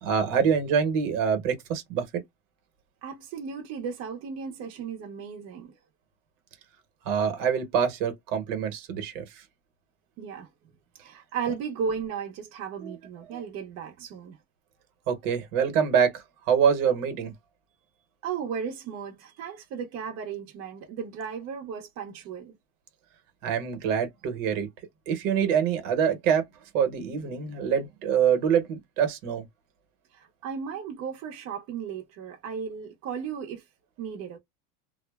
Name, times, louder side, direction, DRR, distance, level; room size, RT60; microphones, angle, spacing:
voice 1, 0.0-2.1 7.0-9.3 12.8-12.9 15.1-17.3 23.4-24.7 25.1-26.4 26.7-29.4, right 7 dB, 70° right, 1.1 m, -25 dB
voice 2, 3.0-5.8 10.2-10.5 11.0-14.4 18.2-22.6 30.1-33.6 34.0-34.4, right 6 dB, 45° right, 0.8 m, -35 dB
2.5 x 2.1 x 2.3 m
cardioid pair, 150°, 38 cm